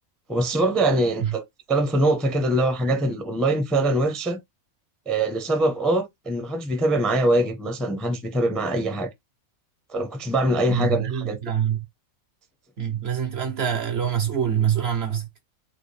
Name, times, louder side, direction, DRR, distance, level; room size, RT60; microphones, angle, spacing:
voice 1, 0.3-1.4 1.7-4.4 5.1-9.1 9.9-11.4, right 1 dB, ahead, 0.4 m, -23 dB
voice 2, 10.7-11.8 12.8-15.3, right 9 dB, 60° right, 0.8 m, -25 dB
4.7 x 2.2 x 3.2 m
omnidirectional pair, 1.5 m